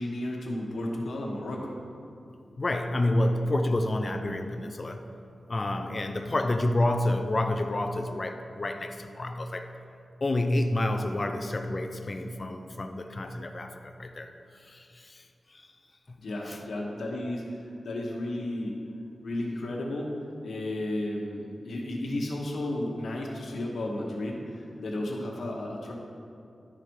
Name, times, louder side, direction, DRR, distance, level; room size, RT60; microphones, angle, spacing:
voice 1, 0.0-1.8 16.2-18.8 19.2-20.1 20.4-25.9, left 1 dB, 80° left, -2 dB, 1.1 m, -33 dB
voice 2, 2.6-5.1 5.5-9.7 10.2-15.2 15.5-15.7 16.1-16.2 16.5-16.6, left 1 dB, 30° left, 5 dB, 0.4 m, -29 dB
11.5 x 5.0 x 4.6 m, 2.5 s
wide cardioid pair, 170°, 0 cm